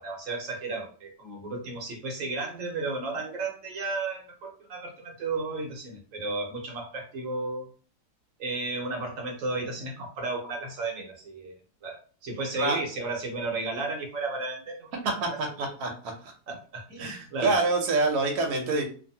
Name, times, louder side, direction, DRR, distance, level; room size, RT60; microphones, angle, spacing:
voice 1, 0.0-7.7 8.4-15.0 15.3-15.4 15.6-15.7 16.5-17.6, right 3 dB, 60° right, 0 dB, 1.1 m, -33 dB
voice 2, 15.2-15.9 17.0-18.9, right 3 dB, 85° right, 3 dB, 1.2 m, -26 dB
2.6 x 2.6 x 2.7 m, 0.40 s
omnidirectional pair, 1.7 m